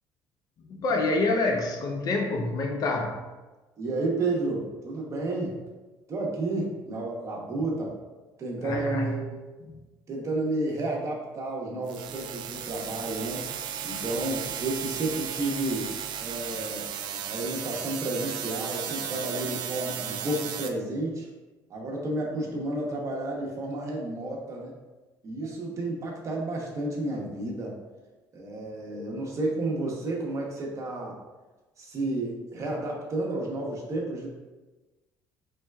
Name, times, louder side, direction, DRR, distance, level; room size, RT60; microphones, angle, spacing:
voice 1, 0.7-3.2 8.6-9.1, left 2 dB, 50° left, 2 dB, 0.6 m, -27 dB
voice 2, 3.8-5.6 6.1-7.9 8.4-9.3 10.1-13.4 13.8-15.9 16.2-16.9 17.2-21.3 21.7-24.7 25.2-27.7 28.3-31.2 31.8-34.3, right 2 dB, 40° right, -2 dB, 0.9 m, -31 dB
sound 1, 11.9-20.7, right 8 dB, 70° right, 0.4 m, -35 dB
4.3 x 3.3 x 2.3 m, 1.2 s
cardioid pair, 120°, 8 cm